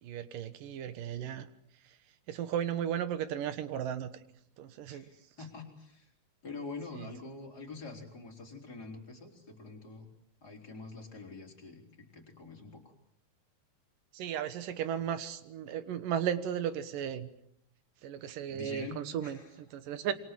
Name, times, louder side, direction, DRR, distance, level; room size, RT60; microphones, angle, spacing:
voice 1, 0.0-1.5 2.3-4.1 4.6-5.1 6.9-7.1 14.1-17.3 18.0-20.1, right 9 dB, 70° right, 13 dB, 2.8 m, -35 dB
voice 2, 4.9-6.1 6.4-10.1 10.4-12.9 18.5-19.5, left 3 dB, 25° left, 1 dB, 4.7 m, -46 dB
27.0 x 23.5 x 7.6 m, 0.70 s
omnidirectional pair, 4.2 m